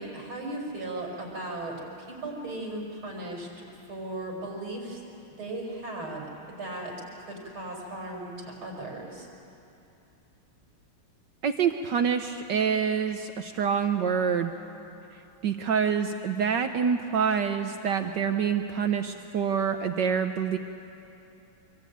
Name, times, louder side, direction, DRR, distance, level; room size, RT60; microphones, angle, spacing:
voice 1, 0.0-3.5 3.9-5.0 5.4-6.2 6.6-6.9 7.2-9.3, right 2 dB, 80° right, -1 dB, 6.1 m, -36 dB
voice 2, 11.4-14.5 15.4-20.6, right 7 dB, 65° right, 7 dB, 1.4 m, -26 dB
25.5 x 23.5 x 9.4 m, 2.8 s
omnidirectional pair, 2.2 m